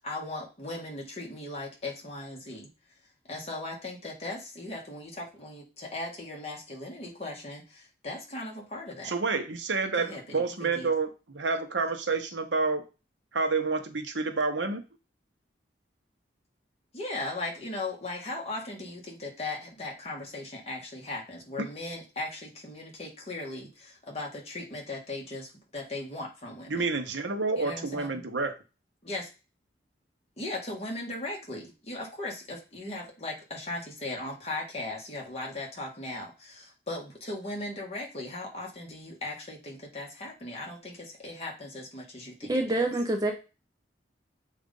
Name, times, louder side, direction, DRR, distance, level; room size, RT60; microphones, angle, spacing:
voice 1, 0.0-2.7 3.3-9.1 9.9-10.9 16.9-26.9 27.6-28.2 29.0-29.3 30.4-42.9, left 2 dB, 35° left, -1 dB, 1.5 m, -38 dB
voice 2, 9.0-11.1 11.3-12.8 13.3-14.8 26.7-28.5, right 4 dB, 85° right, 6 dB, 0.9 m, -29 dB
voice 3, 42.5-43.3, right 2 dB, 20° right, 3 dB, 0.5 m, -26 dB
7.3 x 2.6 x 5.2 m, 0.31 s
head